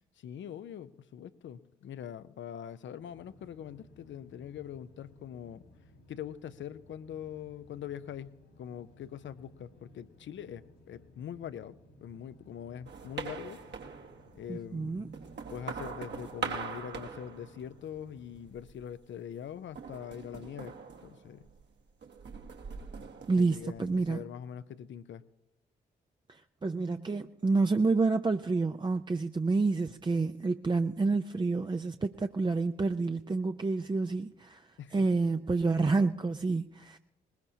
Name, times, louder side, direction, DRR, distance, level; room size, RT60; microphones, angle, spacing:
voice 1, 0.2-5.6 6.1-13.6 14.3-15.1 15.5-21.5 23.4-25.2 34.8-35.1, left 9 dB, 60° left, 0.7 m, -43 dB
sound 1, 3.0-18.6, left 1 dB, 90° left, 3.1 m, -59 dB
sound 2, 12.9-14.5 15.0-18.0 18.3-18.9 19.7-21.7 22.0-24.1, right 5 dB, 55° right, 1.4 m, -42 dB
voice 2, 14.5-15.2 23.3-24.2 26.3-37.0, right 3 dB, 20° right, 0.5 m, -29 dB
20.5 x 20.0 x 2.8 m
hypercardioid pair, 45°, 21 cm